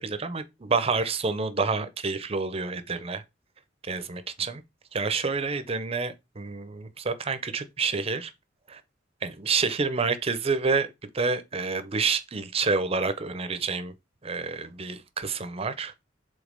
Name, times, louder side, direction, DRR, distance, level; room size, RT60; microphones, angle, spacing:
voice 1, 0.0-3.2 3.8-4.6 4.9-8.3 8.7-8.8 9.2-13.9 14.2-15.9, right 4 dB, 30° right, 0.6 m, -28 dB
5.1 x 3.8 x 5.2 m
head